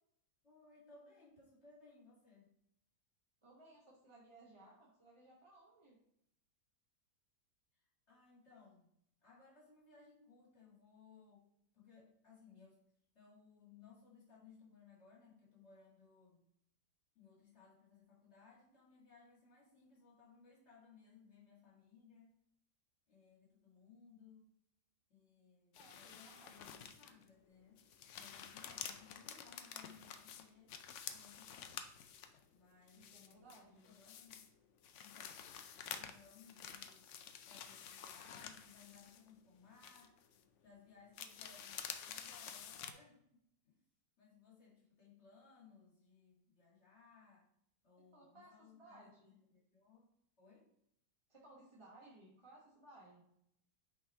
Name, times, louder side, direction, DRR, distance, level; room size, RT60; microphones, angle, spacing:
voice 1, 0.4-2.5 7.7-8.9 9.2-11.5 11.7-12.8 13.1-16.4 17.1-22.3 23.1-24.5 25.1-27.8 28.1-30.8 31.1-31.9 32.5-33.4 33.8-34.4 35.0-35.5 35.9-37.2 37.4-40.2 40.6-43.8 44.2-47.5 47.8-50.1 50.4-50.7, left 5 dB, 40° left, -5 dB, 2.1 m, -63 dB
voice 2, 3.4-6.0 25.7-26.7 32.9-33.9 48.1-49.3 51.3-53.2, right 2 dB, 20° right, -6 dB, 1.2 m, -61 dB
sound 1, 25.7-27.3 27.7-32.4 32.9-34.5 34.8-39.5 39.8-40.4 41.1-42.9, left 8 dB, 75° left, 0.6 m, -50 dB
5.8 x 4.0 x 4.2 m, 0.75 s
omnidirectional pair, 1.8 m